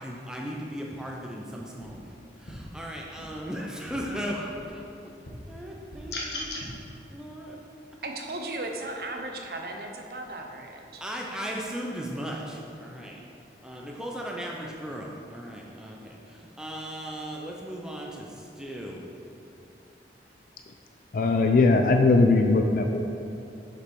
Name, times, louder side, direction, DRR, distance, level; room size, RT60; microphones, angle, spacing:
voice 1, 0.0-2.1 2.4-4.9 5.5-6.5 7.1-7.6 11.0-13.2 13.6-19.0, equal, 5° right, -2 dB, 0.5 m, -37 dB
sound 1, 1.8-1.9 2.4-2.5 3.1-3.2 3.8-3.9 4.5-4.6 5.2-5.3 5.9-6.0 6.4-6.7, equal, 90° left, 1.5 m, -46 dB
sound 2, 6.1-6.7, left 2 dB, 75° left, 1.1 m, -33 dB
voice 2, 8.0-11.0, right 2 dB, 55° right, 2 dB, 0.8 m, -36 dB
voice 3, 21.1-23.0, left 3 dB, 50° left, 4 dB, 0.3 m, -20 dB
7.0 x 5.2 x 4.7 m, 2.6 s
head